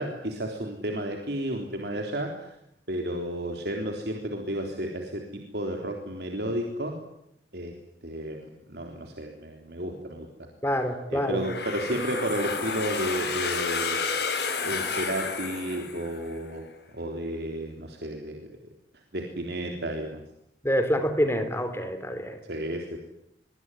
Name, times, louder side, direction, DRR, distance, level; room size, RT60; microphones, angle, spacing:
voice 1, 0.0-2.6 2.9-7.0 7.5-7.8 8.0-10.5 11.1-14.0 14.6-16.7 16.9-18.5 19.1-20.2 22.4-23.0, right 1 dB, 65° right, 2 dB, 3.7 m, -32 dB
voice 2, 10.6-11.4 20.6-22.4, equal, 15° left, 9 dB, 3.6 m, -26 dB
sound 1, 11.4-16.3, left 5 dB, 65° left, 5.8 m, -30 dB
24.5 x 24.0 x 9.9 m, 0.79 s
head